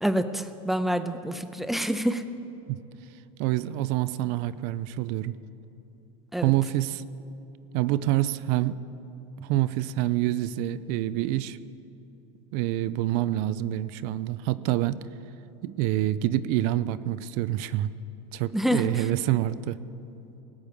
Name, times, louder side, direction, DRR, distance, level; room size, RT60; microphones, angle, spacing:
voice 1, 0.0-2.2 6.3-6.5 18.5-19.1, equal, ahead, 9 dB, 0.6 m, -27 dB
voice 2, 3.4-5.3 6.4-7.0 7.7-8.8 9.4-11.6 12.5-15.0 15.6-17.9 18.3-19.8, right 14 dB, 55° right, 15 dB, 0.5 m, -27 dB
19.0 x 8.1 x 5.3 m, 2.8 s
hypercardioid pair, 110°, 17 cm